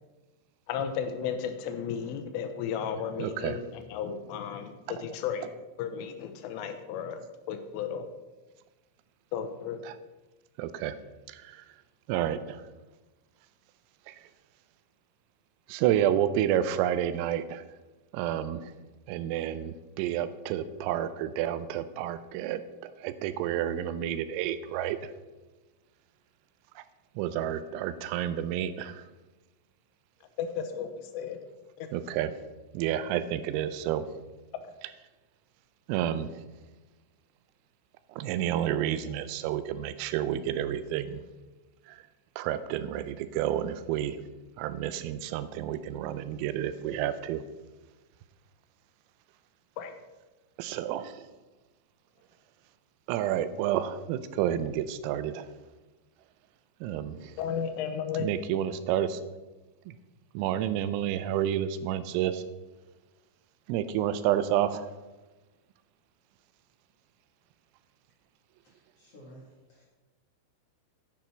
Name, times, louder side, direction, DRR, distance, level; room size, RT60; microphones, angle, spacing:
voice 1, 0.7-5.4 5.8-7.2 7.5-8.1 9.3-9.8 30.4-31.4 31.8-31.9 49.8-49.9 57.4-58.3, left 7 dB, 80° left, 8 dB, 3.2 m, -34 dB
voice 2, 3.2-3.6 9.9-10.0 10.6-11.0 11.3-11.6 12.1-12.7 14.1-14.2 15.7-17.6 18.1-18.7 19.1-25.1 26.8-26.9 27.2-29.0 31.9-32.3 32.7-34.1 35.9-36.4 38.1-41.2 41.9-42.0 42.4-44.2 44.6-47.4 50.6-51.3 53.1-55.5 56.8-57.4 58.2-59.2 59.9-60.0 60.3-62.4 63.7-64.9, right 11 dB, 85° right, 12 dB, 3.3 m, -30 dB
voice 3, 68.6-69.8, right 1 dB, 50° left, -5 dB, 2.0 m, -53 dB
10.0 x 9.6 x 4.4 m, 1.1 s
omnidirectional pair, 5.9 m